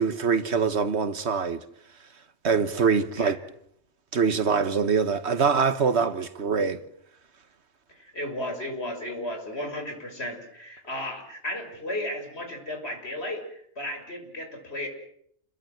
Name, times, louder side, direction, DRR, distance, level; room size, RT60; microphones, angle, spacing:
voice 1, 0.0-1.6 2.4-3.4 4.1-6.8, right 5 dB, 70° right, 1.5 m, -24 dB
voice 2, 7.9-14.9, left 1 dB, 60° left, 6.4 m, -34 dB
29.0 x 22.0 x 7.9 m
omnidirectional pair, 1.2 m